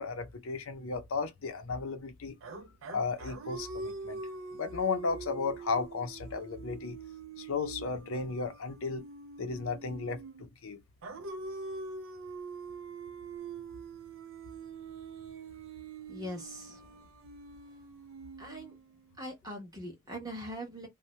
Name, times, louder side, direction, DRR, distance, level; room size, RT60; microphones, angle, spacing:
voice 1, 0.0-2.4 2.9-4.2 4.5-7.0 7.4-9.0 9.4-10.8, left 4 dB, 65° left, 0.6 m, -34 dB
sound 1, 2.4-10.5 11.0-19.1, right 4 dB, 60° right, 0.4 m, -44 dB
voice 2, 16.1-17.0 18.4-18.8 19.2-20.9, equal, 15° right, 1.1 m, -42 dB
2.7 x 2.1 x 3.0 m
head